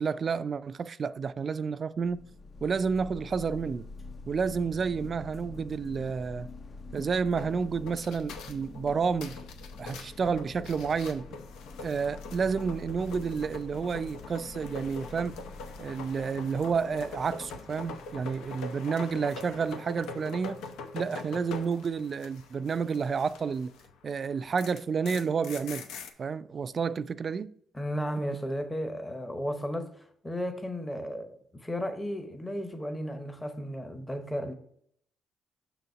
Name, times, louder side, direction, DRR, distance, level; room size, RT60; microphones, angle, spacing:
voice 1, 0.0-2.2 2.6-3.9 4.3-6.5 6.9-9.4 9.8-11.3 11.8-15.4 15.8-20.6 20.9-23.7 24.0-25.9 26.2-27.5, right 5 dB, 45° right, 0.3 m, -30 dB
sound 1, 2.0-18.6, left 3 dB, 35° left, 0.5 m, -46 dB
sound 2, 7.4-23.9 24.2-26.1, left 4 dB, 90° left, 0.7 m, -44 dB
voice 2, 27.7-34.5, equal, 15° left, 0.8 m, -34 dB
6.4 x 4.0 x 4.5 m
cardioid pair, 90°, 0 cm